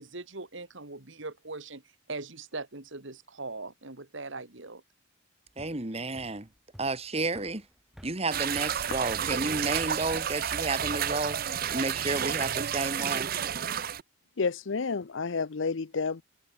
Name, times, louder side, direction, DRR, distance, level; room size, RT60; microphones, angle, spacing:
voice 1, 0.0-1.8 2.1-4.8 5.9-6.0, right 3 dB, 65° right, 2.0 m, -40 dB
sound 1, 5.5-12.0, equal, ahead, 3.6 m, -55 dB
voice 2, 5.6-6.5 6.8-7.7 8.0-11.4 11.7-13.3, right 2 dB, 30° right, 1.8 m, -31 dB
sound 2, 8.3-14.0, right 9 dB, 45° right, 0.5 m, -31 dB
voice 3, 14.4-16.2, left 4 dB, 65° left, 0.6 m, -30 dB
head